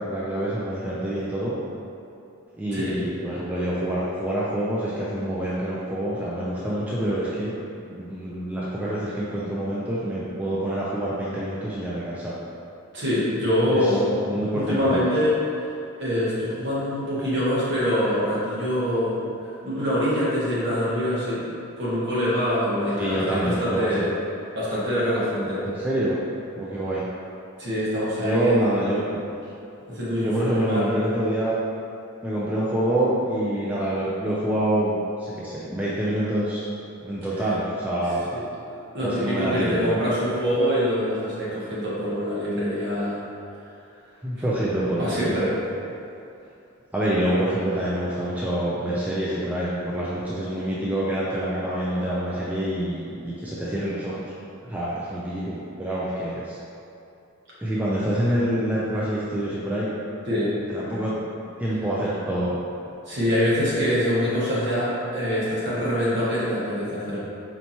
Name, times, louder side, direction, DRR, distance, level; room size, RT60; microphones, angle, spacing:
voice 1, 0.0-1.5 2.6-7.5 7.8-12.4 13.7-14.0 14.2-15.1 22.9-24.1 25.6-26.2 26.6-27.1 28.2-29.2 30.2-31.6 32.2-36.6 37.0-38.2 39.0-40.0 44.2-45.3 46.9-54.3 54.6-56.6 57.6-59.9 60.7-61.2 61.6-62.5, right 1 dB, 5° right, -8 dB, 0.3 m, -26 dB
voice 2, 12.9-14.0 14.5-15.3 16.0-21.4 21.8-24.1 24.5-25.6 27.6-28.5 29.9-30.9 38.9-43.2 45.0-45.6 57.6-57.7 60.3-60.5 63.1-67.2, equal, 55° right, -9 dB, 1.2 m, -24 dB
4.4 x 2.8 x 2.7 m, 2.7 s
head